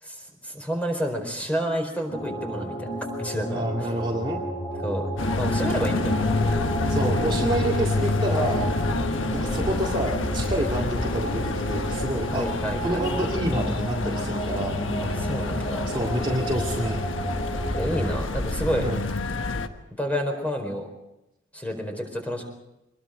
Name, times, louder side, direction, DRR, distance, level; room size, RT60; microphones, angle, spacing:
voice 1, 0.0-2.9 3.2-3.9 4.8-7.0 12.3-13.1 15.0-15.9 17.7-18.9 20.0-20.9 21.5-22.5, equal, 10° left, 3 dB, 4.5 m, -30 dB
sound 1, 2.1-18.1, equal, 35° left, 5.6 m, -32 dB
voice 2, 3.5-4.4 6.9-8.7 9.3-12.5 12.8-14.8 15.9-17.0 18.8-19.0, right 1 dB, 25° right, -1 dB, 2.2 m, -28 dB
sound 2, 5.2-19.7, left 2 dB, 85° left, 1.4 m, -28 dB
25.0 x 21.5 x 5.1 m, 0.92 s
head